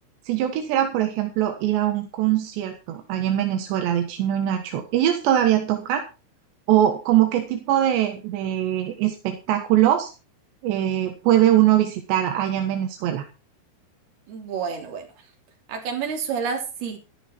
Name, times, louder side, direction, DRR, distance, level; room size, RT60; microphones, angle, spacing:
voice 1, 0.3-6.0 6.7-10.1 10.6-13.2, right 12 dB, 85° right, 3.7 m, -22 dB
voice 2, 14.3-15.1 15.7-17.0, right 6 dB, 65° right, 5.1 m, -29 dB
13.5 x 12.5 x 4.5 m
omnidirectional pair, 4.9 m